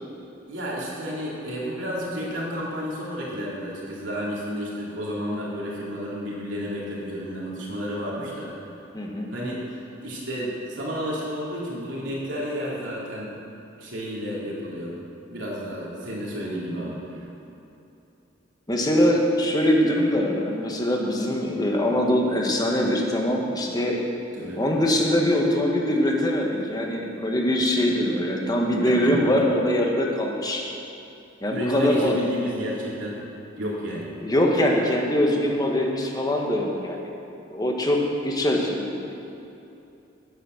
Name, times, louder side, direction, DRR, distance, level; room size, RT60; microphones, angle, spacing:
voice 1, 0.5-8.6 9.3-9.7 10.0-13.4 13.8-15.0 15.3-17.3 24.3-24.6 28.9-29.2 31.5-33.2 33.6-34.1, equal, 75° right, -5 dB, 3.1 m, -31 dB
voice 2, 8.9-9.3 18.7-24.0 24.6-30.6 31.4-32.1 34.2-37.1 37.5-39.1, left 1 dB, 20° left, 0 dB, 1.5 m, -23 dB
10.0 x 9.4 x 6.5 m, 2.8 s
head